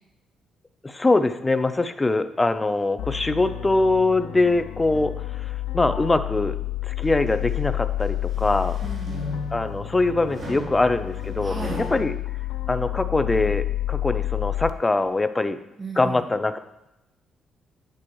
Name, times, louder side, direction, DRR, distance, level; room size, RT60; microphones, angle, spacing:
voice 1, 0.8-5.5 5.7-6.6 6.8-8.8 9.5-11.5 11.9-12.1 12.7-15.6 16.0-16.6, left 2 dB, 20° left, 11 dB, 0.6 m, -23 dB
sound 1, 3.0-14.7, left 14 dB, 85° left, 0.4 m, -30 dB
sound 2, 7.0-7.6 8.1-9.7 10.3-12.0, left 1 dB, 40° right, 2.9 m, -36 dB
voice 2, 8.8-9.4 11.4-11.8 15.8-16.3, right 3 dB, 25° right, 3 dB, 0.8 m, -36 dB
8.8 x 8.0 x 3.1 m, 0.90 s
cardioid pair, 90°, 0 cm